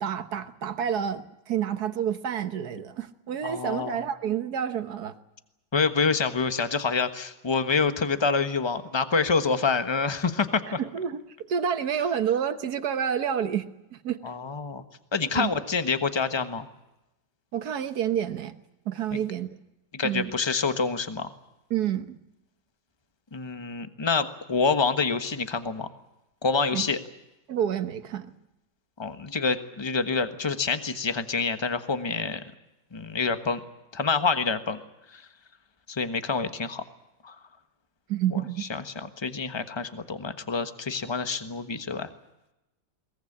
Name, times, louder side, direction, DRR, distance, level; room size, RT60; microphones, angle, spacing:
voice 1, 0.0-5.1 10.8-11.2 11.5-14.2 15.3-15.5 17.5-18.6 18.8-19.5 20.0-20.3 21.7-22.2 26.7-26.9 27.5-28.3 38.1-38.7, right 9 dB, 65° right, 11 dB, 1.7 m, -29 dB
voice 2, 3.4-4.0 5.7-10.8 14.2-14.8 15.1-16.7 19.1-19.2 19.9-21.3 23.3-25.9 26.4-27.0 29.0-32.4 32.9-33.6 33.9-34.8 35.1-35.2 35.9-36.8 37.2-37.3 38.3-38.4 38.7-42.1, left 4 dB, 15° left, 10 dB, 1.2 m, -27 dB
22.0 x 20.0 x 8.7 m, 0.94 s
omnidirectional pair, 1.9 m